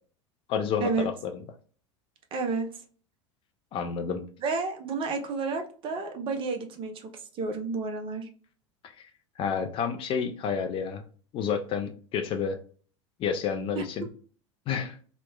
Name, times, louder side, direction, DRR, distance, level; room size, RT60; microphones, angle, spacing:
voice 1, 0.5-1.4 3.7-4.2 9.4-11.0 11.3-12.6 13.2-14.1 14.7-15.0, left 6 dB, 35° left, 6 dB, 0.4 m, -30 dB
voice 2, 2.3-2.7 4.4-8.3 13.7-13.8, right 4 dB, 35° right, 5 dB, 0.6 m, -31 dB
3.0 x 2.1 x 2.2 m, 0.43 s
figure-of-eight pair, 80°, 16 cm